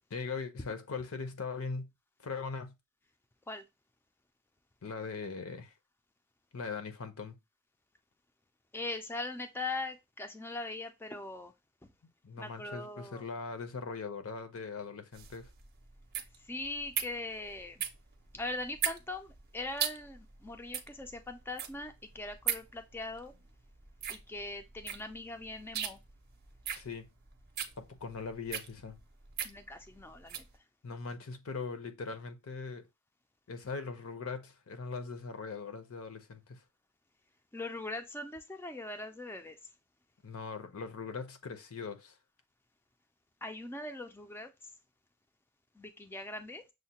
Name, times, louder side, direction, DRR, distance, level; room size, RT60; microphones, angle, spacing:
voice 1, 0.1-1.9 2.2-2.7 4.8-5.7 6.5-7.4 12.2-15.5 26.8-27.1 27.8-29.0 30.8-32.9 33.5-36.6 40.2-42.2, left 4 dB, 75° left, 0.7 m, -40 dB
voice 2, 8.7-11.5 12.4-13.2 16.4-17.8 18.3-23.3 24.1-26.0 29.4-30.4 37.5-39.6 43.4-44.5 45.8-46.6, left 2 dB, 10° left, 0.3 m, -41 dB
sound 1, 15.1-30.5, right 8 dB, 45° right, 0.5 m, -39 dB
6.3 x 2.1 x 2.8 m
head